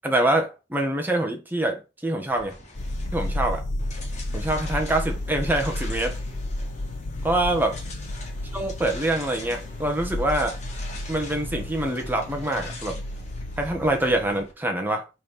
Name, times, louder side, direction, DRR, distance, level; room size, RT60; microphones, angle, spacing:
voice 1, 0.0-2.6 3.1-3.6 4.3-6.2 7.2-7.8 8.5-10.6 11.1-13.0 13.6-15.0, right 1 dB, 10° right, 1.4 m, -25 dB
sound 1, 2.3-14.5, left 2 dB, 40° left, 2.2 m, -43 dB
sound 2, 2.8-14.4, left 1 dB, 80° left, 0.8 m, -32 dB
6.2 x 4.3 x 5.8 m
head